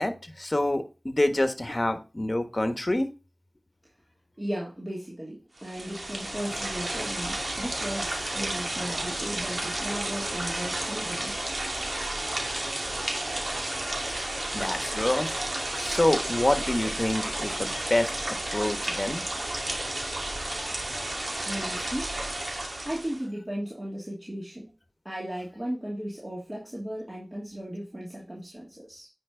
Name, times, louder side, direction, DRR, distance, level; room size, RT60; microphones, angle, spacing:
voice 1, 0.0-3.1 8.8-9.0 14.1-19.2, left 1 dB, 35° left, 8 dB, 1.4 m, -27 dB
voice 2, 4.4-11.3 21.5-22.1 22.8-24.7 25.0-29.1, equal, 25° right, -4 dB, 2.7 m, -36 dB
sound 1, 5.6-23.2, right 1 dB, 55° right, 2.4 m, -32 dB
9.3 x 5.4 x 3.9 m, 0.31 s
wide cardioid pair, 45°, 0 cm